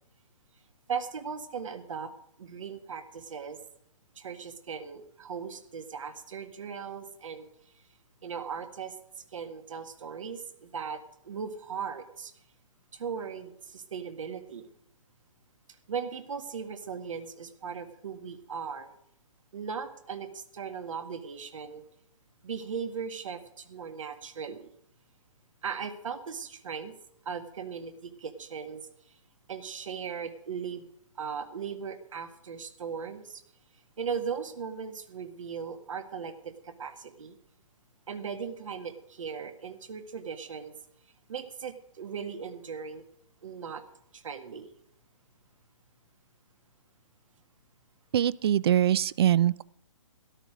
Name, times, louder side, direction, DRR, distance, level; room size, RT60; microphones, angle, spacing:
voice 1, 0.9-2.1 2.4-3.6 4.2-7.5 8.2-8.9 9.3-12.3 12.9-14.7 15.9-18.9 19.5-21.8 22.4-24.7 25.6-26.9 27.3-28.9 29.5-30.9 31.2-33.4 34.0-37.4 38.1-40.7 41.3-43.0 43.4-43.8 44.1-44.7, right 6 dB, 70° right, 7 dB, 1.9 m, -38 dB
voice 2, 48.1-49.6, right 11 dB, 50° right, 22 dB, 0.4 m, -23 dB
13.0 x 12.0 x 5.1 m, 0.70 s
hypercardioid pair, 155°, 17 cm